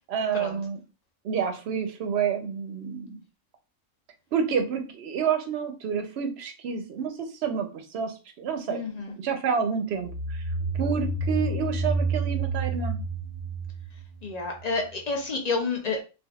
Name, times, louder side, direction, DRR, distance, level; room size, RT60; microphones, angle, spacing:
voice 1, 0.1-0.8 1.2-3.2 4.3-8.8 9.2-10.4 10.8-13.0, right 7 dB, 60° right, 0.8 m, -29 dB
voice 2, 8.7-9.1 14.2-16.0, left 3 dB, 55° left, 0.4 m, -29 dB
sound 1, 10.1-14.6, right 2 dB, 5° left, 1.2 m, -29 dB
3.4 x 2.3 x 2.3 m
omnidirectional pair, 1.4 m